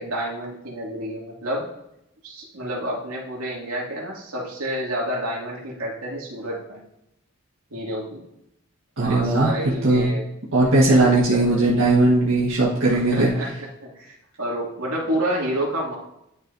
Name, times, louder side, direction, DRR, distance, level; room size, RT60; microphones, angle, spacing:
voice 1, 0.0-1.7 2.2-6.8 7.7-8.2 9.0-10.3 10.8-11.7 12.9-13.5 13.8-16.0, right 1 dB, 90° right, -4 dB, 2.6 m, -29 dB
voice 2, 9.0-9.5 9.8-10.1 10.5-13.3, right 2 dB, 70° right, -7 dB, 1.8 m, -18 dB
11.0 x 5.4 x 2.8 m, 0.84 s
head